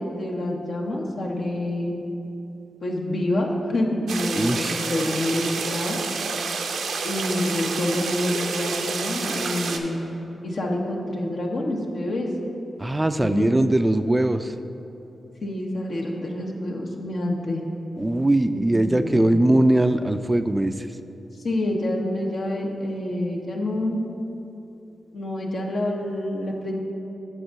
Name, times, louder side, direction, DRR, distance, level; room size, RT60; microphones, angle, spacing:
voice 1, 0.0-1.9 2.8-6.0 7.0-10.0 10.4-12.3 13.2-13.5 15.4-17.7 18.5-19.3 21.3-24.0 25.1-26.8, left 1 dB, 65° left, 0 dB, 1.0 m, -27 dB
sound 1, 4.1-9.8, right 4 dB, 80° right, 0.5 m, -29 dB
voice 2, 4.4-4.8 12.8-14.5 18.0-20.9, right 1 dB, 20° right, 10 dB, 0.3 m, -21 dB
7.8 x 3.7 x 6.3 m, 2.9 s
supercardioid pair, 45°, 0 cm